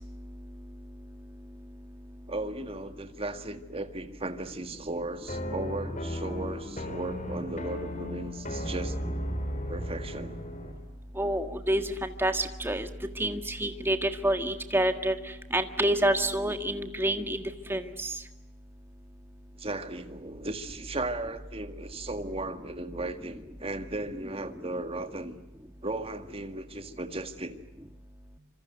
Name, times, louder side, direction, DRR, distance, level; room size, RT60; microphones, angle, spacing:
voice 1, 2.3-9.0 9.7-10.4 19.6-25.4 25.8-27.5, right 2 dB, 25° right, 8 dB, 1.9 m, -36 dB
sound 1, 5.3-10.8, equal, 35° left, 3.8 m, -35 dB
voice 2, 11.2-12.9 13.2-15.1 15.5-17.4 17.7-18.1, right 1 dB, 10° right, 8 dB, 1.7 m, -28 dB
26.5 x 26.5 x 8.0 m, 0.95 s
head